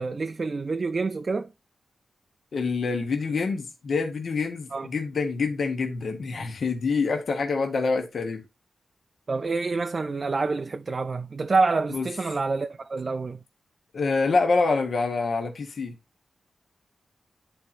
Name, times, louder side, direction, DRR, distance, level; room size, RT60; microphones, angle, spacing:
voice 1, 0.0-1.5 4.7-4.9 9.3-13.4, right 3 dB, 40° right, 0.4 m, -27 dB
voice 2, 2.5-8.4 11.9-12.1 13.9-16.0, left 4 dB, 60° left, 1.2 m, -26 dB
11.5 x 4.3 x 2.5 m
wide cardioid pair, 130°, 0 cm